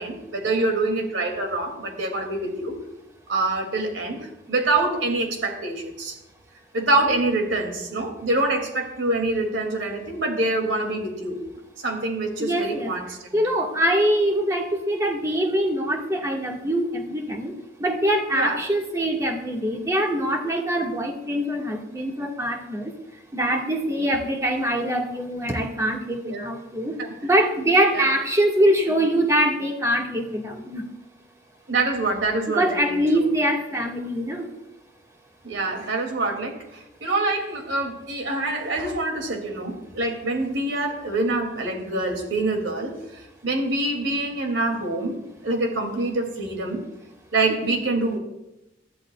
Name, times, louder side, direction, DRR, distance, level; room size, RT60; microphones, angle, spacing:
voice 1, 0.0-2.8 3.3-6.2 6.7-11.4 11.8-13.4 18.3-18.6 26.2-26.5 27.0-27.1 27.9-28.0 31.7-33.3 35.4-45.2 45.4-46.8 47.3-48.2, right 2 dB, 75° right, 3 dB, 2.7 m, -25 dB
voice 2, 12.4-12.9 13.3-17.5 17.8-22.9 23.3-27.0 27.2-30.8 32.5-34.5 47.7-47.8, right 1 dB, 15° right, 0 dB, 1.8 m, -23 dB
20.0 x 13.0 x 2.4 m, 0.94 s
head